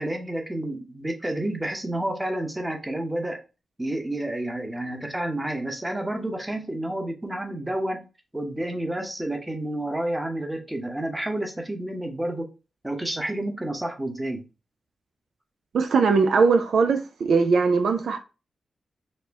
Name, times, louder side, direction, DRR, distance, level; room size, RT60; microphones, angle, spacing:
voice 1, 0.0-3.4 3.8-8.0 8.3-12.5 12.8-14.4, right 1 dB, 15° right, 0.8 m, -30 dB
voice 2, 15.7-18.2, right 4 dB, 80° right, 0.4 m, -20 dB
4.2 x 2.1 x 3.3 m
cardioid pair, 70°, 0 cm